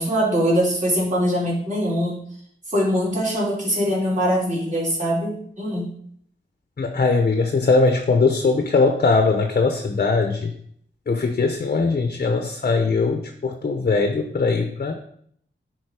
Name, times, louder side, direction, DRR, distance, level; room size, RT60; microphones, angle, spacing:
voice 1, 0.0-2.2 2.7-5.9, equal, 40° right, -6 dB, 4.0 m, -22 dB
voice 2, 6.8-10.5 11.1-14.9, left 4 dB, 45° left, 6 dB, 0.8 m, -20 dB
10.0 x 4.3 x 4.8 m, 0.65 s
wide cardioid pair, 105°, 20 cm